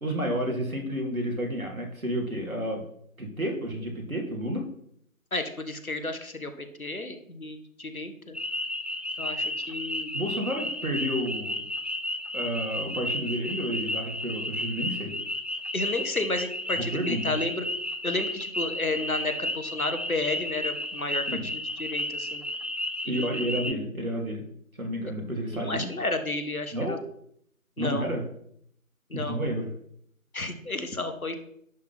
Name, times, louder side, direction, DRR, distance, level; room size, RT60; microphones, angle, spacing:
voice 1, 0.0-2.8 3.2-4.6 10.1-11.6 12.3-15.2 16.9-17.3 21.3-21.4 23.1-24.4 24.8-25.9 26.7-27.0 27.8-28.2 29.1-29.7, equal, 75° right, 1 dB, 2.5 m, -30 dB
voice 2, 5.3-8.4 9.2-10.2 15.7-17.6 18.0-21.2 21.5-22.4 23.0-23.6 25.5-27.0 27.8-28.1 29.1-29.4 30.3-31.5, left 2 dB, 75° left, 8 dB, 1.5 m, -32 dB
sound 1, 8.3-23.7, left 1 dB, 5° right, 0.4 m, -33 dB
10.5 x 3.7 x 5.9 m, 0.68 s
figure-of-eight pair, 175°, 43 cm